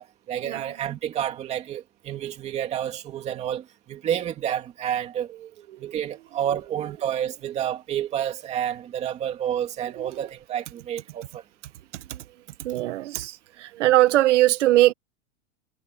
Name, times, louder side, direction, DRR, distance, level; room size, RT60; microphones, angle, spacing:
voice 1, 0.0-5.3 5.8-11.4, right 10 dB, 20° right, 2.4 m, -29 dB
voice 2, 11.9-12.2 12.6-14.9, right 15 dB, 70° right, 1.4 m, -21 dB
supercardioid pair, 180°, 37 cm